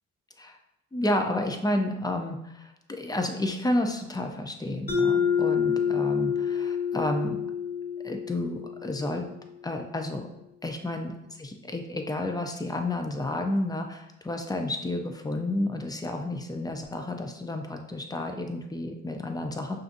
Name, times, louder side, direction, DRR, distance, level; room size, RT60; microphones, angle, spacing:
voice 1, 0.9-2.7 3.0-7.4 8.0-9.3 9.6-10.3 10.6-11.1 11.4-19.8, left 1 dB, 15° left, 4 dB, 0.5 m, -31 dB
Mallet percussion, 4.9-9.4, left 7 dB, 35° left, 1.2 m, -28 dB
5.5 x 2.6 x 2.5 m, 0.86 s
cardioid pair, 90°, 30 cm